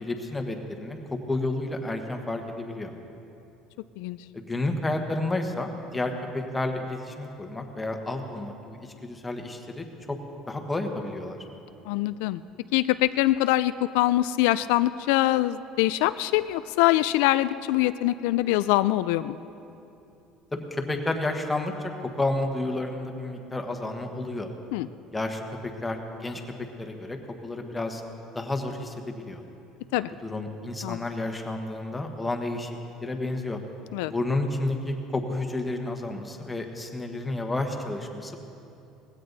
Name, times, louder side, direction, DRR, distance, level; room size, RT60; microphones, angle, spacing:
voice 1, 0.0-2.9 4.3-10.2 10.5-11.4 20.5-21.9 22.2-24.5 25.1-26.4 26.8-28.0 28.3-29.4 30.2-33.6 34.0-38.4, left 2 dB, 10° left, 3 dB, 1.3 m, -31 dB
voice 2, 11.9-12.4 12.7-19.4 24.7-24.9 29.9-30.1 30.8-31.0 33.9-34.1, left 16 dB, 90° left, 13 dB, 0.3 m, -24 dB
19.0 x 16.0 x 4.0 m, 2.8 s
cardioid pair, 145°, 0 cm